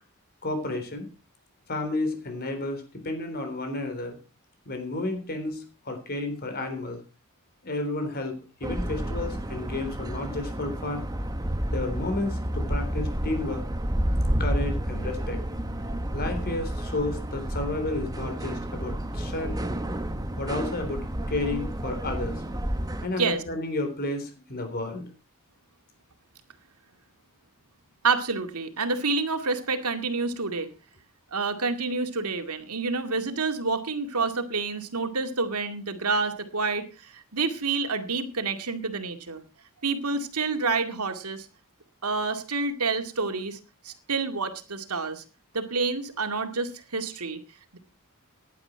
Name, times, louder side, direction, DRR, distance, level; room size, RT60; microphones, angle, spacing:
voice 1, 0.4-1.1 1.7-4.2 4.7-7.0 7.6-11.0 11.7-13.7 14.4-15.4 16.1-19.6 20.3-22.4 23.0-25.1, left 2 dB, 45° left, 6 dB, 3.7 m, -32 dB
sound 1, 8.6-23.1, right 1 dB, 15° right, 1.1 m, -30 dB
voice 2, 28.0-30.7 31.3-39.4 39.8-41.5 42.0-43.6 43.8-45.2 45.5-47.4, right 4 dB, 85° right, 7 dB, 2.2 m, -28 dB
15.5 x 10.5 x 4.5 m, 0.32 s
head